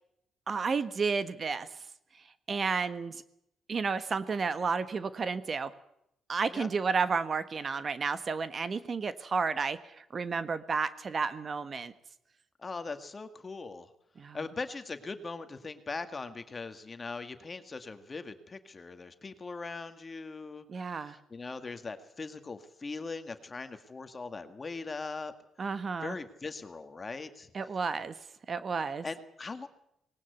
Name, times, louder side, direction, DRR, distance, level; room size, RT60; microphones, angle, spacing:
voice 1, 0.5-1.7 2.5-3.2 3.7-5.7 6.3-11.9 14.2-14.4 20.7-21.2 25.6-26.1 27.5-28.1 28.5-29.0, right 5 dB, 40° right, 12 dB, 1.4 m, -31 dB
voice 2, 12.6-13.9 14.3-25.3 26.0-27.5 29.0-29.7, left 4 dB, 30° left, 9 dB, 1.9 m, -40 dB
19.5 x 18.5 x 8.2 m, 0.76 s
cardioid pair, 90°, 0 cm